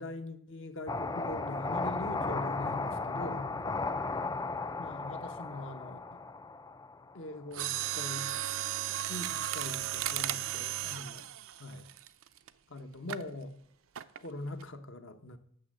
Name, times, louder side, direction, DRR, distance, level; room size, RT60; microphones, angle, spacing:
voice 1, 0.0-3.5 4.8-6.2 7.1-8.3 9.1-11.9 12.7-13.5 14.2-15.4, left 1 dB, 60° left, 8 dB, 1.0 m, -42 dB
sound 1, 0.9-7.4, left 3 dB, 15° left, 0.3 m, -35 dB
Mechanisms, 7.5-12.5 13.1-13.3 14.0-14.3 14.6-14.7, right 12 dB, 70° right, 0.5 m, -35 dB
8.8 x 6.5 x 7.4 m, 0.68 s
head